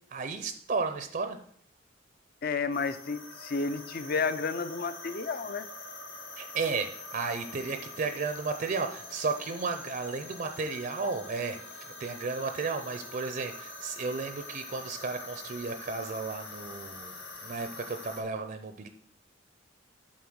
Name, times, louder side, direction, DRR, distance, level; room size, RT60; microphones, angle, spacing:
voice 1, 0.1-1.4 6.4-11.6 12.0-17.1 17.4-18.9, right 4 dB, 45° right, 8 dB, 0.5 m, -33 dB
voice 2, 2.4-5.7, left 4 dB, 50° left, 12 dB, 0.5 m, -31 dB
sound 1, 2.7-18.2, left 2 dB, 85° left, 3.7 m, -45 dB
8.6 x 3.9 x 6.2 m, 0.64 s
head